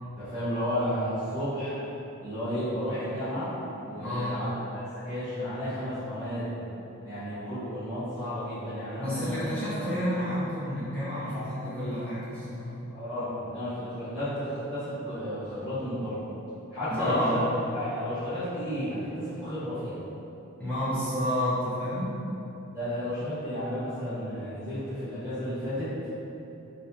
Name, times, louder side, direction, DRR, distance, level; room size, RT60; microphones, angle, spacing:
voice 1, 0.0-1.7 2.2-3.5 3.9-6.5 7.0-10.1 11.3-11.6 12.9-16.2 16.7-17.3 17.7-20.0 22.7-25.9, equal, 15° right, -16 dB, 0.8 m, -33 dB
voice 2, 4.0-4.4 9.0-12.7 16.9-17.4 20.6-22.1, equal, 5° left, -15 dB, 1.1 m, -30 dB
3.9 x 2.6 x 2.7 m, 3.0 s
head